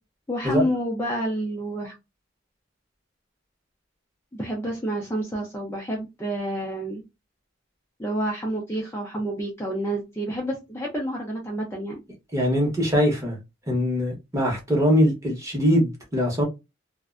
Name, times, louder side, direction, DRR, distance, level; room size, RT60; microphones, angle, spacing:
voice 1, 0.3-1.9 4.3-7.0 8.0-12.0, right 1 dB, 10° left, 0.4 m, -29 dB
voice 2, 12.3-13.4 13.7-16.4, equal, 15° right, 0.8 m, -22 dB
2.5 x 2.1 x 2.4 m
head